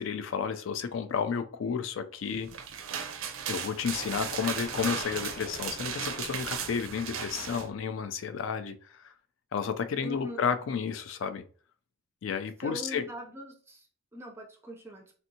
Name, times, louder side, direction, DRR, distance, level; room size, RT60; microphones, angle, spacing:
voice 1, 0.0-2.5 3.5-9.1 9.5-11.4 12.2-13.1, left 6 dB, 70° left, 10 dB, 0.4 m, -32 dB
sound 1, 2.3-7.7, right 7 dB, 85° right, 0.4 m, -36 dB
sound 2, 3.8-8.1, left 1 dB, 50° left, 0.9 m, -47 dB
voice 2, 10.0-10.4 12.6-13.8 14.1-15.1, equal, 10° right, 1 dB, 0.4 m, -42 dB
3.3 x 2.7 x 2.6 m, 0.43 s
head